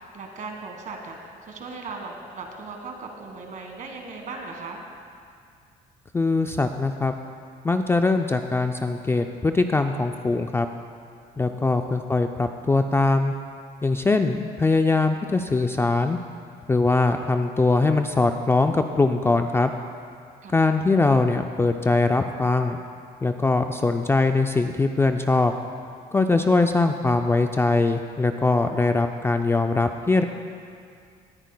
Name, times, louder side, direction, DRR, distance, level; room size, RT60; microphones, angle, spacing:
voice 1, 0.0-4.8 11.5-11.7 20.4-20.5, right 3 dB, 50° right, 2 dB, 1.6 m, -38 dB
voice 2, 6.1-7.1 7.6-10.7 11.4-13.3 13.8-16.2 16.7-19.7 20.5-22.8 23.2-25.5 26.1-30.2, left 3 dB, 15° left, 6 dB, 0.3 m, -22 dB
18.5 x 10.0 x 2.2 m, 2.3 s
cardioid pair, 110°, 17 cm